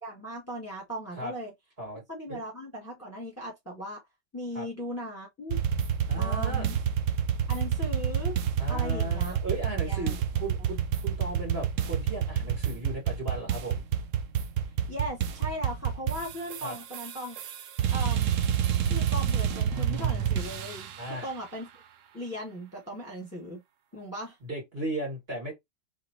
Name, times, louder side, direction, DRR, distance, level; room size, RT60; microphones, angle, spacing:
voice 1, 0.0-1.5 2.1-4.0 4.3-5.6 6.2-6.8 7.5-8.4 8.7-9.4 9.9-10.2 14.9-17.4 17.9-18.4 18.9-21.7 22.1-23.6 23.9-24.3, equal, 10° left, 1.5 m, -38 dB
sound 1, 5.5-21.1, right 8 dB, 75° right, 0.7 m, -28 dB
voice 2, 6.1-6.7 8.6-13.8 16.6-16.8 21.0-21.3 24.4-25.5, right 2 dB, 35° right, 2.0 m, -36 dB
4.1 x 3.6 x 2.8 m
omnidirectional pair, 1.9 m